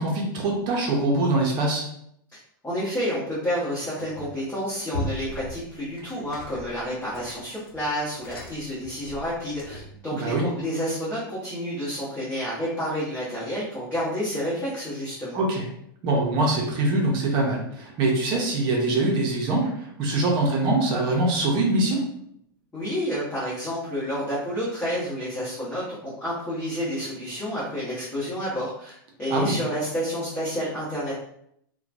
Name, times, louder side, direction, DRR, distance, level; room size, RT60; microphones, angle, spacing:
voice 1, 0.0-1.8 10.1-10.5 15.3-15.7 16.0-22.1 29.3-29.6, right 2 dB, 40° right, -1 dB, 0.7 m, -23 dB
voice 2, 2.6-15.4 22.7-31.1, equal, 15° left, -10 dB, 1.0 m, -29 dB
sound 1, 4.0-4.5 4.9-10.0, left 1 dB, 80° left, 0.8 m, -38 dB
2.9 x 2.2 x 2.5 m, 0.71 s
hypercardioid pair, 130°, 12 cm